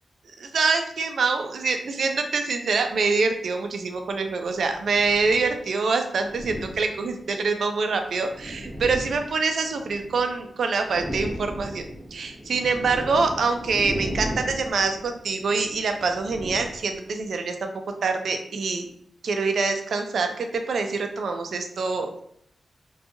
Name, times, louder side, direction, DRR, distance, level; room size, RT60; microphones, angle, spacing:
voice 1, 0.4-17.7 18.0-18.9 19.2-22.2, right 4 dB, 65° right, 5 dB, 0.3 m, -25 dB
sound 1, 2.9-3.1 4.1-5.6 6.2-7.3 8.0-10.4 10.7-17.3, equal, 5° right, 0.5 m, -36 dB
2.7 x 2.2 x 2.5 m, 0.69 s
wide cardioid pair, 170°, 0 cm